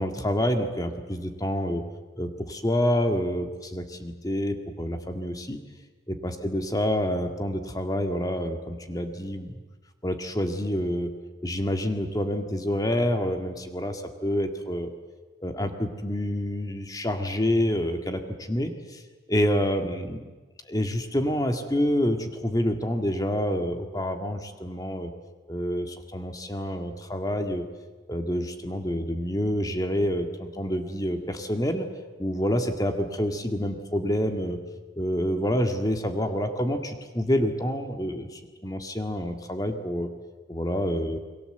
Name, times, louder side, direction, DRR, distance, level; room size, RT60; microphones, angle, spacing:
voice 1, 0.0-1.8 2.2-5.6 6.1-9.6 10.0-11.1 11.4-14.9 15.4-19.0 19.3-20.3 20.7-25.1 25.5-27.7 28.1-31.9 32.2-34.6 35.0-40.1 40.5-41.2, equal, 20° left, 6 dB, 2.0 m, -27 dB
29.0 x 22.5 x 8.0 m, 1.3 s
head